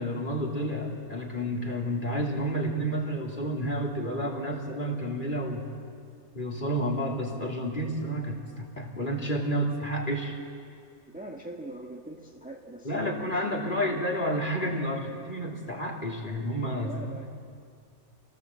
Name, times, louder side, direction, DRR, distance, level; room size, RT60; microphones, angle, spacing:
voice 1, 0.0-5.7 6.3-10.4 12.8-17.3, equal, 35° left, 0 dB, 3.1 m, -30 dB
voice 2, 11.1-14.0 16.7-17.3, right 1 dB, 5° right, -1 dB, 1.4 m, -42 dB
28.5 x 18.0 x 7.6 m, 2.3 s
omnidirectional pair, 1.5 m